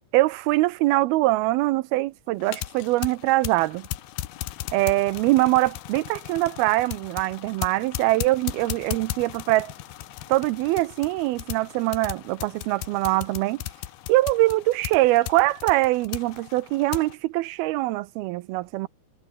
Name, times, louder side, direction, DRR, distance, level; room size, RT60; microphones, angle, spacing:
voice 1, 0.1-3.9 4.7-9.7 10.3-13.6 14.1-18.9, right 18 dB, 85° right, 2.5 m, -23 dB
sound 1, 2.4-17.1, left 14 dB, 80° left, 3.1 m, -37 dB
sound 2, 6.6-13.4, left 4 dB, 45° left, 7.2 m, -57 dB
omnidirectional pair, 4.5 m